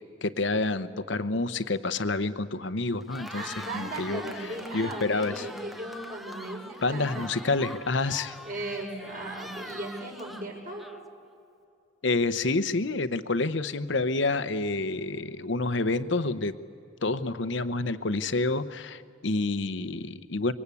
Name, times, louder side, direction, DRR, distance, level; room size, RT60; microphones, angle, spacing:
voice 1, 0.2-4.2 4.7-5.5 6.8-8.3 12.0-16.5 17.0-20.5, left 3 dB, 65° left, 13 dB, 0.9 m, -28 dB
Cheering, 3.0-11.2, equal, ahead, 0.7 m, -43 dB
voice 2, 3.3-7.5 8.4-10.9, right 1 dB, 45° right, -1 dB, 5.9 m, -37 dB
25.5 x 24.0 x 8.4 m, 2.5 s
head